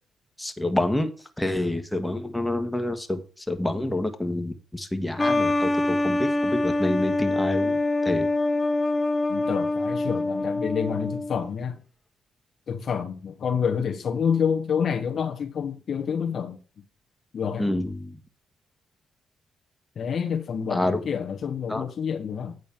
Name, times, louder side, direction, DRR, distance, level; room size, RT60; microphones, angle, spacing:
voice 1, 0.4-1.1 1.4-3.2 3.5-8.3 17.6-18.1 20.7-21.0 21.7-21.8, left 1 dB, 10° left, 1.5 m, -27 dB
sound 1, 5.2-11.5, left 2 dB, 30° left, 0.8 m, -25 dB
voice 2, 9.3-11.8 12.7-16.6 17.3-17.7 20.0-22.6, left 7 dB, 60° left, 1.1 m, -28 dB
9.2 x 4.0 x 7.1 m
supercardioid pair, 60°, 0 cm